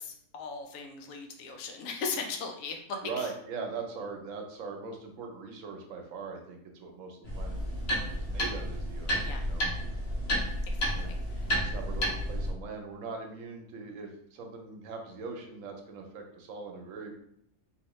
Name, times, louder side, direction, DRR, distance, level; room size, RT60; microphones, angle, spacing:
voice 1, 0.0-3.3 9.2-9.4 10.7-11.2, left 4 dB, 90° left, 3 dB, 1.0 m, -38 dB
voice 2, 3.0-7.6 7.9-9.7 10.9-11.1 11.4-17.1, right 4 dB, 80° right, 3 dB, 1.0 m, -41 dB
sound 1, 7.2-12.5, equal, 60° left, 0.9 m, -31 dB
2.8 x 2.7 x 3.0 m, 0.69 s
omnidirectional pair, 1.4 m